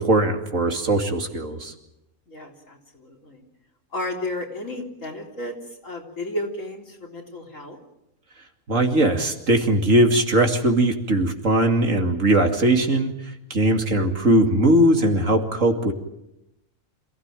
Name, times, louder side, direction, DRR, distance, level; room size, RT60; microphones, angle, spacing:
voice 1, 0.0-1.7 8.7-15.9, right 1 dB, 70° right, 4 dB, 2.8 m, -20 dB
voice 2, 2.3-3.4 3.9-5.5 5.8-7.8 13.6-14.0, left 1 dB, 70° left, 1 dB, 4.0 m, -33 dB
27.0 x 16.5 x 9.1 m, 0.86 s
omnidirectional pair, 1.4 m